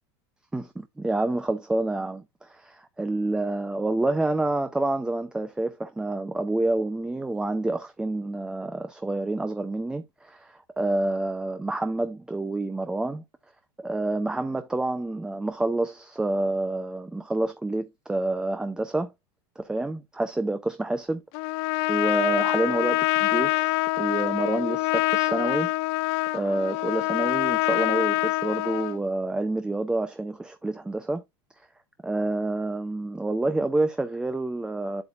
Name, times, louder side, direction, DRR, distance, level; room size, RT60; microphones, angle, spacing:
voice 1, 0.5-13.2 13.8-19.1 19.6-21.2 21.9-25.7 26.3-31.2 32.0-35.0, right 2 dB, 5° right, 0.5 m, -28 dB
Trumpet, 21.3-29.0, left 19 dB, 55° left, 0.4 m, -25 dB
8.0 x 7.1 x 2.4 m
supercardioid pair, 140°, 14 cm